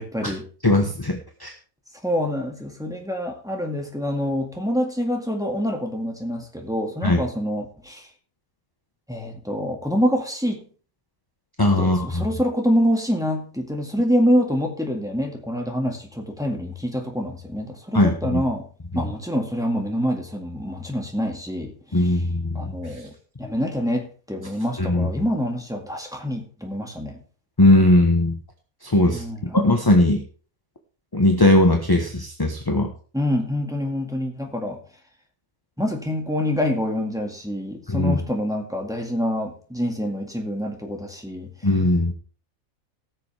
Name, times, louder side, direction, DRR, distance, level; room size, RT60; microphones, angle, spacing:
voice 1, 0.0-0.5 2.0-8.1 9.1-10.7 11.8-18.7 18.9-22.1 22.5-23.1 23.4-27.2 29.0-29.6 33.1-34.8 35.8-41.5, equal, ahead, 1 dB, 1.9 m, -26 dB
voice 2, 0.6-1.5 7.0-7.2 11.6-12.2 17.9-18.4 18.9-19.1 21.9-22.7 24.8-25.1 27.6-28.4 28.8-29.2 29.5-30.2 31.1-32.9 37.9-38.2 41.6-42.1, left 1 dB, 20° left, 4 dB, 1.0 m, -19 dB
18.5 x 6.7 x 3.4 m, 0.39 s
omnidirectional pair, 1.5 m